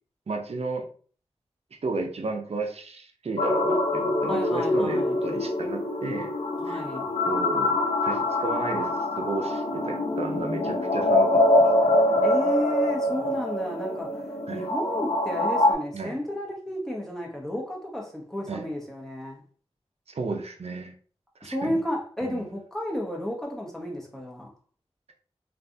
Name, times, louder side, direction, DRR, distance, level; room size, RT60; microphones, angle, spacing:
voice 1, 0.3-0.9 1.8-6.3 6.7-6.8 7.2-12.2 13.1-13.2 14.5-14.7 15.9-16.2 18.5-18.7 20.1-20.9 21.4-21.8 22.2-22.5, right 3 dB, 65° right, 0.6 m, -33 dB
sound 1, 3.4-15.7, left 1 dB, 70° left, 0.6 m, -24 dB
voice 2, 4.3-5.2 6.6-7.1 12.2-19.4 21.4-24.5, equal, 5° left, 1.2 m, -32 dB
3.2 x 2.4 x 2.7 m
cardioid pair, 45°, 11 cm